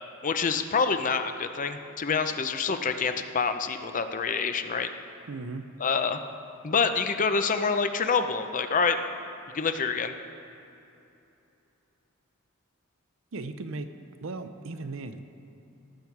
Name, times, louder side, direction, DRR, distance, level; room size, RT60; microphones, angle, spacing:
voice 1, 0.2-4.9 5.8-6.2 6.6-9.0 9.5-10.1, left 5 dB, 40° left, 8 dB, 0.6 m, -27 dB
voice 2, 5.3-5.7 13.3-13.9 14.2-15.2, right 3 dB, 70° right, 10 dB, 0.6 m, -36 dB
18.0 x 7.1 x 4.7 m, 2.9 s
head